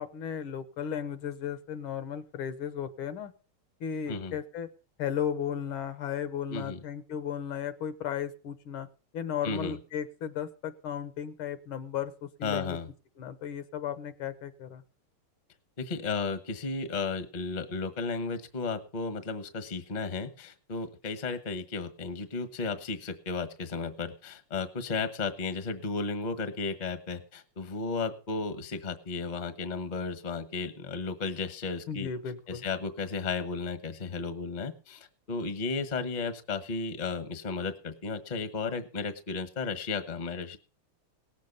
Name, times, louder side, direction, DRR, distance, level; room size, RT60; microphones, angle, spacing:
voice 1, 0.0-3.3 3.8-4.7 5.0-8.9 9.1-12.8 13.2-14.8 31.9-32.6, left 8 dB, 75° left, 11 dB, 1.8 m, -35 dB
voice 2, 9.4-9.8 12.4-12.9 15.8-32.1 32.5-40.6, left 4 dB, 30° left, 10 dB, 0.9 m, -34 dB
18.0 x 7.5 x 5.3 m, 0.36 s
omnidirectional pair, 2.4 m